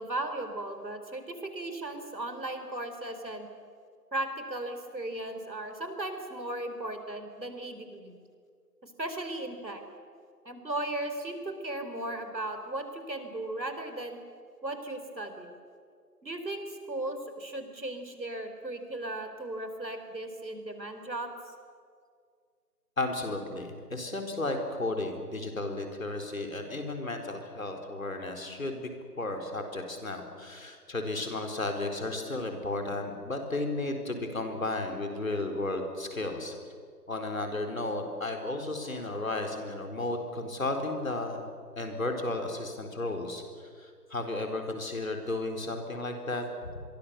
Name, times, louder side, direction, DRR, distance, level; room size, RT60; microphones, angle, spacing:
voice 1, 0.0-3.5 4.1-8.2 8.8-9.8 10.4-14.2 14.6-15.5 16.2-21.3, right 1 dB, 85° right, 7 dB, 4.5 m, -36 dB
voice 2, 23.0-28.9 29.2-36.5 37.1-41.5 41.8-46.8, left 2 dB, 50° left, 4 dB, 4.2 m, -34 dB
27.0 x 22.5 x 6.9 m, 2.1 s
figure-of-eight pair, 170°, 50 cm